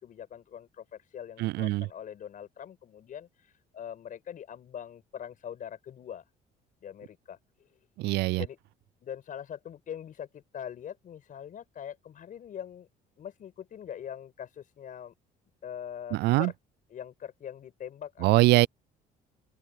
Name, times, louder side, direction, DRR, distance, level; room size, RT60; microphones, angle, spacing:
voice 1, 0.0-3.3 3.7-6.2 6.8-7.4 8.3-8.6 9.0-12.9 13.2-15.1 15.6-16.5 16.9-18.3, left 9 dB, 50° left, 5.8 m, -42 dB
voice 2, 1.4-1.9 8.0-8.4 16.1-16.5 18.2-18.7, right 19 dB, 80° right, 0.4 m, -23 dB
open air
cardioid pair, 110°, 17 cm